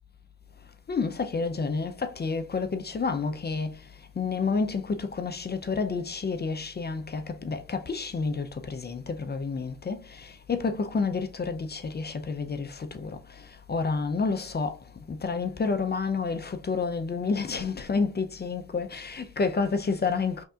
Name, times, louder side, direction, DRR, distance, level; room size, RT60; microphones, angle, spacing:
voice 1, 0.9-3.8 4.2-13.2 13.7-14.8 15.1-20.4, left 4 dB, 30° left, 0.6 m, -29 dB
5.3 x 2.8 x 2.4 m
supercardioid pair, 55°, 33 cm